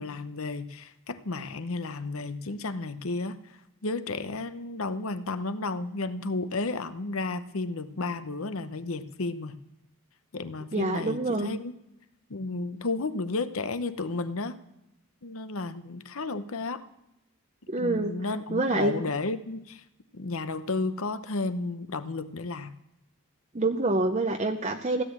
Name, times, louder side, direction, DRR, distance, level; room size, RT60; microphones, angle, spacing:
voice 1, 0.0-9.6 10.3-11.7 12.3-14.6 15.2-16.8 17.8-19.8 20.1-22.7, left 3 dB, 65° left, 11 dB, 0.9 m, -33 dB
voice 2, 10.7-11.5 17.7-18.1 18.5-18.9 23.5-25.0, right 2 dB, 30° right, 4 dB, 0.7 m, -26 dB
16.0 x 11.0 x 7.3 m, 0.89 s
head